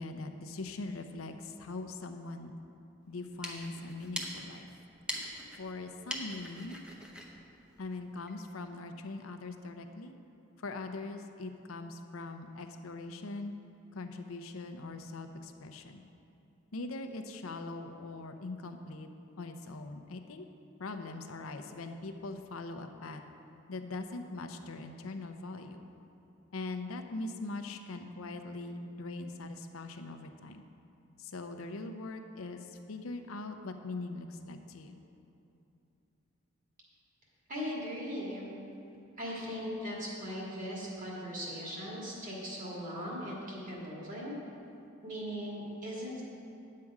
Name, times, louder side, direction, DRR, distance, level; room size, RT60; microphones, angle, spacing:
voice 1, 0.0-2.5 3.1-4.7 5.6-6.9 7.8-10.2 10.6-13.5 13.9-16.0 16.7-19.1 19.4-20.5 20.8-23.2 23.7-25.8 26.5-30.6 31.2-35.0, left 2 dB, 85° left, 7 dB, 0.7 m, -41 dB
sound 1, 3.1-8.4, equal, 5° right, 0.8 m, -43 dB
voice 2, 37.5-38.5 39.2-44.3 45.0-46.2, equal, 40° right, -5 dB, 2.2 m, -39 dB
9.5 x 7.6 x 4.8 m, 2.8 s
head